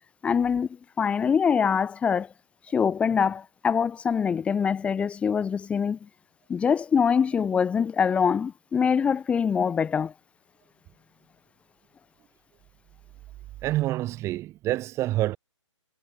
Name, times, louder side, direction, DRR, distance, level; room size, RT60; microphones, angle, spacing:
voice 1, 0.2-0.7 1.0-2.3 2.7-6.1 6.5-10.1, left 6 dB, 5° left, 0.7 m, -24 dB
voice 2, 13.6-15.4, right 15 dB, 15° right, 1.3 m, -27 dB
figure-of-eight pair, 140°, 16 cm